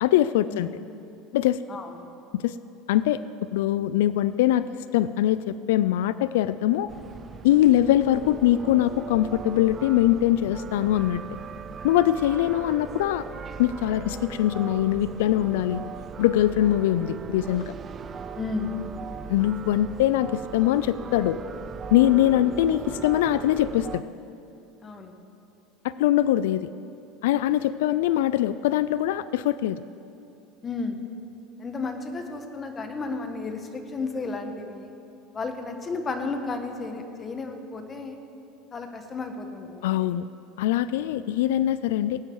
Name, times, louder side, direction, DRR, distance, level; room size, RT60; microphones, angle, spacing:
voice 1, 0.0-0.7 1.3-1.6 2.3-2.6 2.9-3.2 3.5-4.7 4.9-6.9 7.4-11.2 11.8-13.3 13.6-15.8 16.2-17.7 19.3-21.4 21.9-24.1 25.8-26.7 27.2-29.8 39.8-40.3 40.6-42.2, left 13 dB, 90° left, 15 dB, 0.3 m, -22 dB
voice 2, 1.7-2.1 18.4-18.8 24.8-25.1 30.6-31.0 31.6-34.9 35.3-38.2 38.7-40.1, left 3 dB, 25° left, 5 dB, 1.3 m, -33 dB
sound 1, 6.9-24.0, right 6 dB, 25° right, 0.4 m, -39 dB
19.0 x 9.0 x 4.7 m, 2.7 s
supercardioid pair, 130°, 0 cm